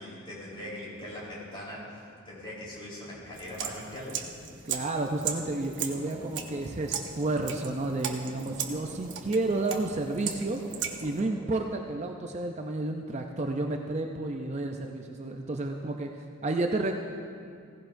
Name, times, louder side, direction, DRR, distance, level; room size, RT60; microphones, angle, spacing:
voice 1, 0.0-1.8 2.3-4.2, left 1 dB, 25° left, -7 dB, 3.8 m, -40 dB
sound 1, 3.3-11.2, right 8 dB, 55° right, 0.9 m, -38 dB
voice 2, 4.6-10.6 11.0-16.9, right 2 dB, 35° right, 3 dB, 0.5 m, -31 dB
sound 2, 5.2-11.4, equal, 5° right, 1.6 m, -46 dB
17.0 x 15.5 x 2.6 m, 2.3 s
head